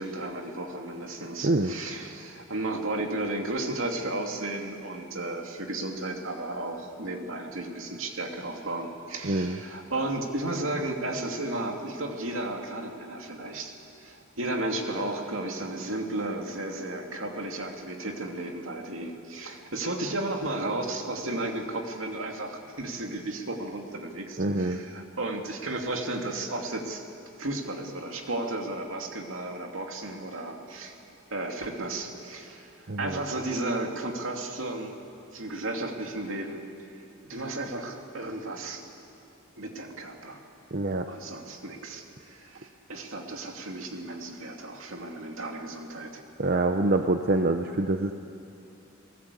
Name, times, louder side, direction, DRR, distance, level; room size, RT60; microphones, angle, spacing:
voice 1, 0.0-13.7 14.0-27.0 27.4-31.0 31.3-35.0 35.3-36.6 37.3-38.8 39.6-40.4 41.1-46.2, right 2 dB, 70° right, 3 dB, 2.6 m, -34 dB
voice 2, 9.2-9.6 24.4-24.8 32.9-33.2 40.7-41.1 46.4-48.1, right 2 dB, 50° right, 6 dB, 0.8 m, -25 dB
29.5 x 18.0 x 8.4 m, 2.7 s
head